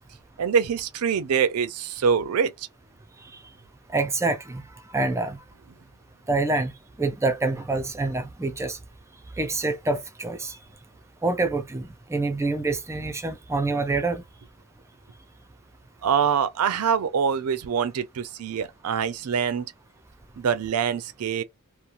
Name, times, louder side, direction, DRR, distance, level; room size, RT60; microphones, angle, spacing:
voice 1, 0.4-2.7 16.0-19.7 20.4-21.4, right 7 dB, 90° right, 0.5 m, -24 dB
voice 2, 3.9-4.6 4.9-5.4 6.3-6.7 7.0-8.8 9.4-10.6 11.2-14.2, right 3 dB, 15° right, 0.3 m, -26 dB
2.9 x 2.0 x 2.4 m
head